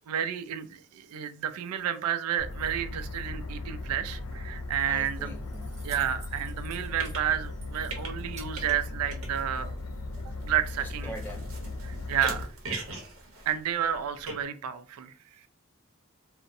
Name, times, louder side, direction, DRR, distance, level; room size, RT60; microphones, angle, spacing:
voice 1, 0.1-5.3 5.8-9.8 10.4-11.1 11.8-12.5 13.5-15.1, right 9 dB, 90° right, 12 dB, 0.3 m, -31 dB
sound 1, 2.4-12.4, left 2 dB, 80° left, 0.5 m, -37 dB
sound 2, 4.2-4.3 4.7-4.8 6.6-7.5 7.8-8.8 9.1-14.3, right 3 dB, 75° right, 0.7 m, -41 dB
Keys jangling, 4.5-9.5, right 4 dB, 30° right, 0.7 m, -53 dB
voice 2, 4.9-5.7 10.8-11.7, equal, 10° left, -2 dB, 0.5 m, -43 dB
2.5 x 2.0 x 2.5 m, 0.40 s
head